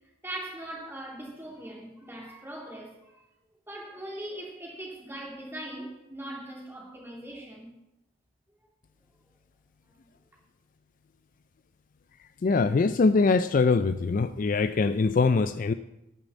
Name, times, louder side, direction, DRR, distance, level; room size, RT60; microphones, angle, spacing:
voice 1, 0.2-3.2 3.7-7.7 9.8-9.9, right 1 dB, 10° right, -2 dB, 2.6 m, -40 dB
voice 2, 12.4-15.7, left 4 dB, 40° left, 12 dB, 0.3 m, -23 dB
10.0 x 6.6 x 7.3 m, 0.90 s
head